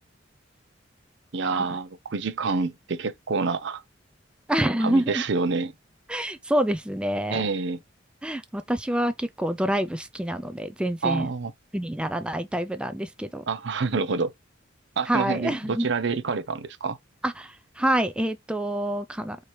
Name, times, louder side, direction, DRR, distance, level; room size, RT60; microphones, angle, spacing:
voice 1, 1.3-3.8 4.8-5.7 7.3-7.8 11.0-11.5 13.5-14.3 15.0-17.0, right 4 dB, 65° right, 0.6 m, -27 dB
voice 2, 4.5-5.2 6.1-7.5 8.2-11.3 11.7-13.4 15.1-15.9 17.2-19.4, right 1 dB, 5° right, 0.3 m, -27 dB
4.7 x 2.9 x 3.0 m
head